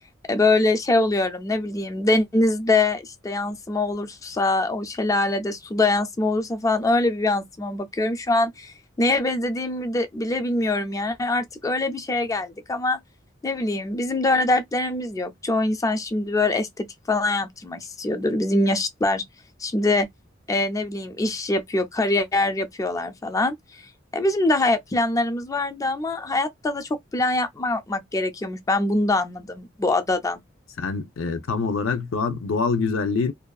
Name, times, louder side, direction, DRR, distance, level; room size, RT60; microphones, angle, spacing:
voice 1, 0.3-13.0 13.4-19.2 19.6-20.1 20.5-23.8 24.1-30.4, left 2 dB, 15° left, 0.3 m, -24 dB
voice 2, 30.8-33.3, left 4 dB, 90° left, 0.5 m, -25 dB
2.5 x 2.3 x 2.3 m
head